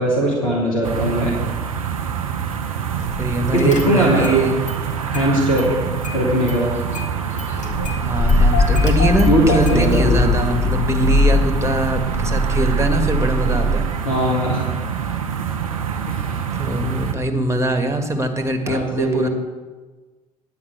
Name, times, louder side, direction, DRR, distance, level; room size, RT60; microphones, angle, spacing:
voice 1, 0.0-1.3 3.5-4.4 5.1-5.7 6.1-6.7 9.3-10.3 13.4-13.5 14.0-14.6 16.1-16.4 18.7-19.3, right 1 dB, 85° left, -3 dB, 1.8 m, -19 dB
sound 1, 0.8-17.2, right 7 dB, 85° right, 0.6 m, -26 dB
Car / Engine starting, 3.0-3.2 3.6-4.4 4.7-5.7 6.0-13.8, left 1 dB, 45° left, 2.0 m, -21 dB
voice 2, 3.2-4.6 7.9-13.8 16.6-19.3, right 1 dB, 15° right, 6 dB, 1.8 m, -23 dB
9.8 x 5.7 x 8.0 m, 1.3 s
figure-of-eight pair, 45°, 17 cm